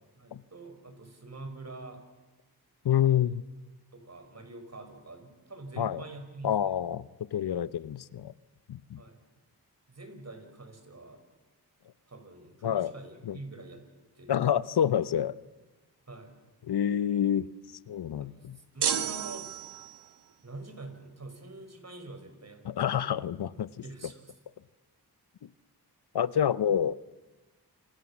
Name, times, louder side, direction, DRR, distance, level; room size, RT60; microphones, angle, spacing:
voice 1, 0.2-2.0 3.1-3.3 3.9-6.8 9.0-9.2 9.9-11.2 12.1-13.8 14.2-14.5 16.1-16.4 18.2-19.5 20.4-23.1 23.8-24.2, right 2 dB, 40° right, 7 dB, 5.6 m, -45 dB
voice 2, 2.8-3.4 5.8-6.0 6.4-8.3 8.7-9.0 12.6-12.9 13.2-13.4 14.3-15.3 16.6-17.5 17.9-18.6 22.6-23.7 26.1-27.0, left 9 dB, 80° left, 17 dB, 0.8 m, -28 dB
sound 1, 18.8-20.1, right 8 dB, 80° right, 1.7 m, -31 dB
28.0 x 26.5 x 7.3 m, 1.1 s
cardioid pair, 60°, 39 cm